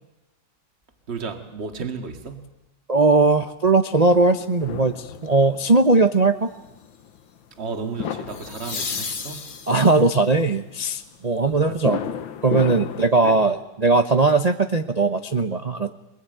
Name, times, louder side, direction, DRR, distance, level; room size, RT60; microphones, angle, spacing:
voice 1, 1.1-2.5 7.6-9.5 11.4-12.0 13.2-13.4, right 5 dB, 30° right, 2.2 m, -33 dB
voice 2, 2.9-6.5 9.7-12.0 12.4-15.9, right 3 dB, 65° right, 0.3 m, -19 dB
sound 1, 4.1-13.1, left 8 dB, 70° left, 1.9 m, -34 dB
sound 2, 5.2-5.6 8.3-10.2 13.0-13.1, left 5 dB, 35° left, 0.8 m, -33 dB
24.0 x 21.0 x 9.2 m
omnidirectional pair, 2.3 m